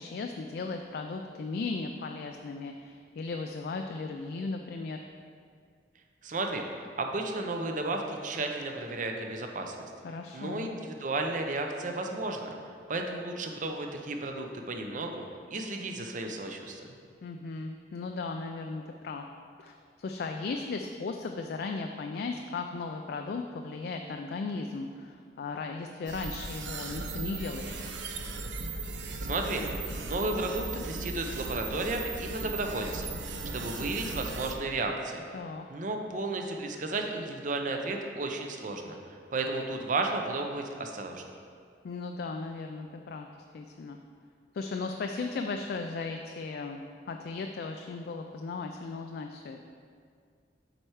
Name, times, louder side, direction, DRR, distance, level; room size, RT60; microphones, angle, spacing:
voice 1, 0.0-5.0 10.0-10.7 17.2-19.3 19.6-28.0 35.3-35.7 41.8-43.3 43.5-44.0 44.5-49.6, left 4 dB, 60° left, 4 dB, 0.3 m, -36 dB
voice 2, 6.2-6.6 7.0-9.8 10.3-12.6 12.9-16.8 29.2-29.7 30.1-33.1 33.5-35.2 35.7-39.0 39.3-41.2, right 2 dB, 45° right, 3 dB, 0.6 m, -33 dB
sound 1, 26.1-34.5, right 3 dB, 85° right, 0.6 m, -37 dB
7.7 x 4.4 x 4.7 m, 2.2 s
head